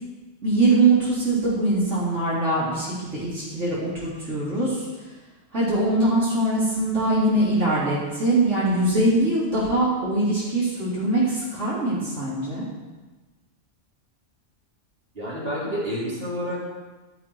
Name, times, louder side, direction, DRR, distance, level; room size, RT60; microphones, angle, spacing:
voice 1, 0.4-4.9 5.5-12.6, right 2 dB, 70° right, -10 dB, 4.0 m, -22 dB
voice 2, 15.1-16.7, equal, 50° right, -7 dB, 4.0 m, -29 dB
12.5 x 8.0 x 4.7 m, 1.2 s
omnidirectional pair, 1.3 m